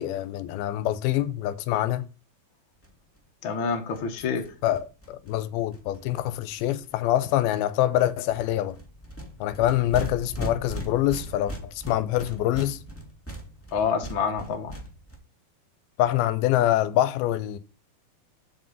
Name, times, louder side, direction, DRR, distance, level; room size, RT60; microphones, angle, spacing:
voice 1, 0.0-2.1 4.6-8.8 9.4-12.8 16.0-17.6, left 13 dB, 90° left, 2.5 m, -25 dB
sound 1, 2.8-2.9 3.2-3.3 3.5-3.6 3.7-6.9 7.3-7.6 7.9-15.2, right 1 dB, 10° left, 0.6 m, -39 dB
voice 2, 3.4-4.5 13.7-14.7, left 6 dB, 65° left, 1.2 m, -27 dB
7.8 x 5.5 x 5.4 m
omnidirectional pair, 4.4 m